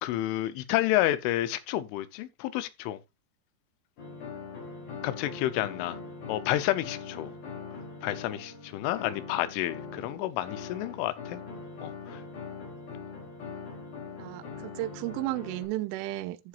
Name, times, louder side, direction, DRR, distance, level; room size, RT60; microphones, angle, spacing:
voice 1, 0.0-3.0 5.0-6.0 6.3-7.3 8.0-11.4 11.8-12.2, left 14 dB, 80° left, 3.3 m, -30 dB
sound 1, 4.0-15.6, left 5 dB, 50° left, 4.8 m, -42 dB
voice 2, 14.2-16.5, right 17 dB, 85° right, 3.1 m, -34 dB
14.0 x 7.2 x 2.5 m
omnidirectional pair, 5.6 m